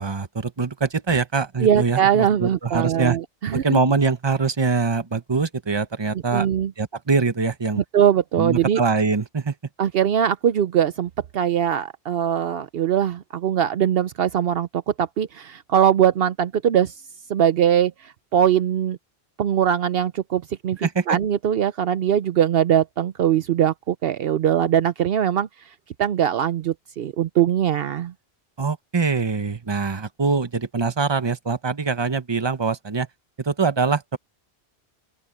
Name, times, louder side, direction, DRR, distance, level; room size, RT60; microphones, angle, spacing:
voice 1, 0.0-3.2 3.5-6.5 6.8-7.8 8.4-9.5 20.8-21.0 28.6-33.1 33.4-34.2, right 4 dB, 25° right, 1.0 m, -23 dB
voice 2, 1.6-3.8 6.3-6.7 7.8-8.8 9.8-16.9 17.3-19.0 19.4-25.5 26.0-28.1, right 9 dB, 70° right, 0.8 m, -21 dB
open air
omnidirectional pair, 1.1 m